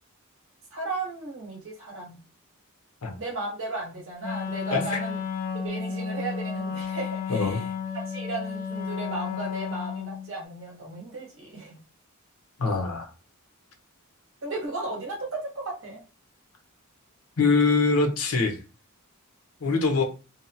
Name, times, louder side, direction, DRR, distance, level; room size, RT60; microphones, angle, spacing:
voice 1, 0.7-2.2 3.2-5.2 5.5-11.8 14.4-15.2 15.6-16.0 19.7-20.0, right 2 dB, 60° right, -2 dB, 0.9 m, -35 dB
Wind instrument woodwind instrument, 4.2-10.3, left 6 dB, 40° left, 0.4 m, -32 dB
voice 2, 4.7-5.0 7.3-7.6 12.6-13.1 17.4-18.6 19.6-20.0, left 4 dB, 85° left, 4 dB, 0.7 m, -23 dB
2.7 x 2.1 x 2.6 m, 0.33 s
head